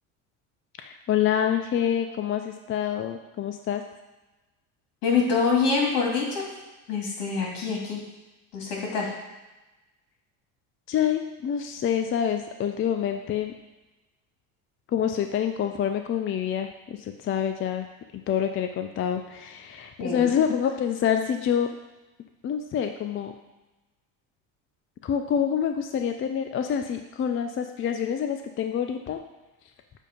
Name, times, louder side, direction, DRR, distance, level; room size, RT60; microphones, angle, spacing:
voice 1, 0.8-3.8 10.9-13.5 14.9-17.9 18.1-21.7 22.4-23.3 25.0-29.2, left 8 dB, 30° left, 6 dB, 0.4 m, -27 dB
voice 2, 5.0-6.4 6.9-8.0 8.5-9.1 20.0-20.4, left 5 dB, 65° left, -2 dB, 2.2 m, -25 dB
7.4 x 2.8 x 5.1 m, 1.1 s
supercardioid pair, 90°, 43 cm